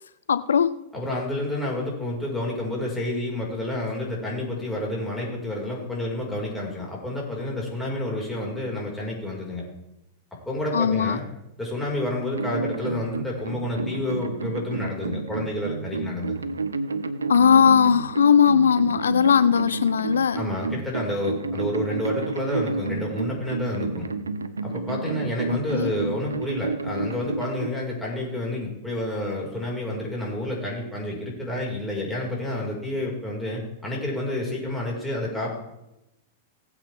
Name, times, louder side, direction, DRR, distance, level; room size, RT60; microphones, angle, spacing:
voice 1, 0.3-0.7 10.7-11.2 17.3-20.4 25.5-25.9, left 7 dB, 80° left, 0.4 m, -19 dB
voice 2, 0.9-9.6 10.4-11.2 11.6-16.4 20.4-24.1 24.6-35.5, left 1 dB, 5° left, 5.1 m, -29 dB
sound 1, 12.3-27.7, right 3 dB, 90° right, 0.7 m, -30 dB
19.0 x 8.1 x 3.6 m
hypercardioid pair, 100°, 0 cm